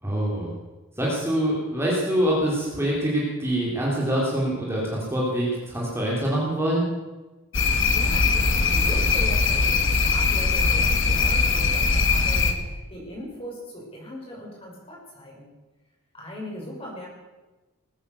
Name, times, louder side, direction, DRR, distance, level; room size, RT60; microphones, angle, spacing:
voice 1, 0.0-0.5 1.0-6.9, right 1 dB, 10° right, -5 dB, 3.6 m, -25 dB
sound 1, 7.5-12.5, left 4 dB, 60° left, 1.6 m, -21 dB
voice 2, 7.6-15.5 16.1-17.1, equal, 25° left, -4 dB, 6.5 m, -39 dB
20.0 x 10.0 x 7.1 m, 1.2 s
head